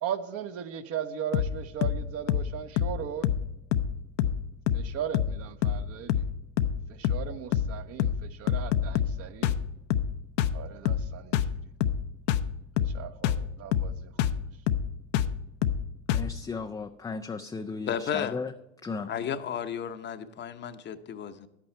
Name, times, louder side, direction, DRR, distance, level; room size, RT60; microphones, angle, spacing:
voice 1, 0.0-3.3 4.7-6.2 6.9-9.6 10.5-11.4 12.9-14.1, right 9 dB, 45° right, 0.9 m, -37 dB
sound 1, 1.3-1.6 1.8-2.0 2.3-2.5 2.8-3.0 3.2-3.5 3.7-3.9 4.2-4.4 4.7-4.9 5.1-5.4 5.6-5.8 6.1-6.3 6.6-6.8 7.0-7.3 7.5-7.7 8.0-8.2 8.5-9.2 9.4-9.6 9.9-10.1 10.4-10.6 10.9-11.1 11.3-11.6 11.8-12.0 12.3-12.5 12.8-13.0 13.2-13.5 13.7-13.9 14.2-14.4 14.7-14.9 15.1-15.4 15.6-15.8 16.1-16.3, left 9 dB, 65° left, 0.7 m, -26 dB
voice 2, 16.1-18.5 18.8-19.1, left 4 dB, 10° left, 0.4 m, -35 dB
voice 3, 17.9-18.3 19.1-21.5, left 8 dB, 30° left, 0.8 m, -33 dB
10.5 x 8.7 x 4.4 m
hypercardioid pair, 100°, 34 cm